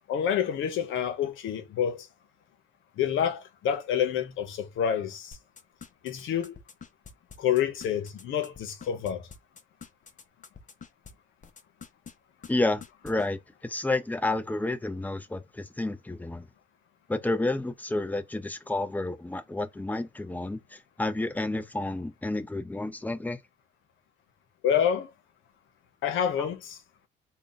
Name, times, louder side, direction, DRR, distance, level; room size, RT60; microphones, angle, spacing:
voice 1, 0.1-2.1 3.0-5.4 6.0-6.6 7.4-9.3 24.6-25.1 26.0-26.8, left 9 dB, 80° left, 0.9 m, -28 dB
sound 1, 5.3-11.1 11.4-12.1 12.4-12.5 12.8-13.3, left 6 dB, 40° left, 0.8 m, -46 dB
voice 2, 12.5-16.5 17.1-23.4 26.4-26.5, left 2 dB, 10° left, 0.6 m, -30 dB
3.8 x 2.3 x 3.9 m
cardioid pair, 90°, 20 cm